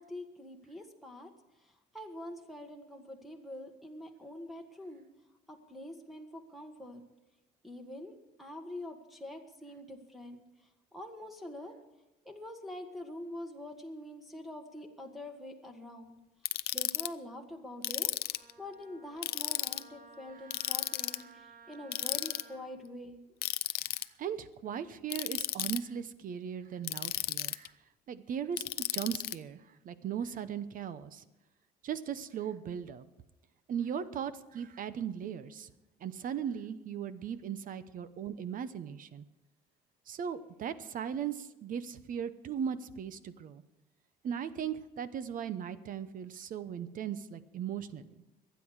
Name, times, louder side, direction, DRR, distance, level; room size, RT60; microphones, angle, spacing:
voice 1, 0.0-1.3 1.6-5.0 5.5-7.0 7.6-10.4 10.9-11.7 12.2-16.1 16.7-23.2, left 1 dB, ahead, 0 dB, 1.6 m, -45 dB
Ratchet pawl, 16.4-17.1 17.8-18.5 19.2-19.8 20.5-21.2 21.9-22.4 23.4-24.0 25.1-25.8 26.8-27.7 28.6-29.3, left 14 dB, 65° left, 0.6 m, -33 dB
Wind instrument woodwind instrument, 18.3-22.6, right 4 dB, 75° right, 4.6 m, -56 dB
voice 2, 23.8-27.7 28.1-31.2 31.8-33.1 33.7-35.7 36.0-39.2 40.1-43.6 44.2-48.1, right 8 dB, 55° right, 14 dB, 0.9 m, -38 dB
24.5 x 9.3 x 4.8 m, 1.0 s
cardioid pair, 110°, 17 cm